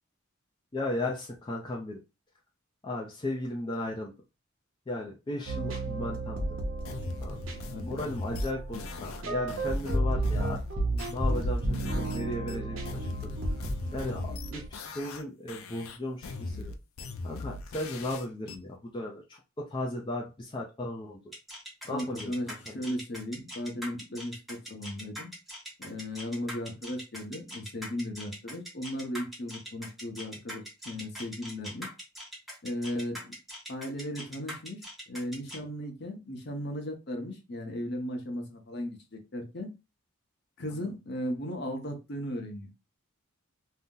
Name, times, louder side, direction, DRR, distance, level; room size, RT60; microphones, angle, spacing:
voice 1, 0.7-2.0 2.8-4.1 4.9-6.6 7.2-7.5 7.8-10.6 10.9-13.3 13.9-16.7 17.2-21.2 21.8-22.8, left 1 dB, 20° left, -1 dB, 0.4 m, -36 dB
sound 1, 5.5-14.7, right 1 dB, 70° right, 0.7 m, -32 dB
sound 2, 6.8-12.2 12.5-15.2 15.5-18.6, left 3 dB, 80° left, 0.5 m, -39 dB
voice 2, 7.6-8.1 21.9-25.3 25.8-31.9 32.6-33.3 33.7-39.7 40.6-42.7, left 1 dB, 50° left, 3 dB, 0.8 m, -36 dB
sound 3, 21.3-35.6, equal, ahead, 0.7 m, -42 dB
2.7 x 2.0 x 3.6 m, 0.27 s
head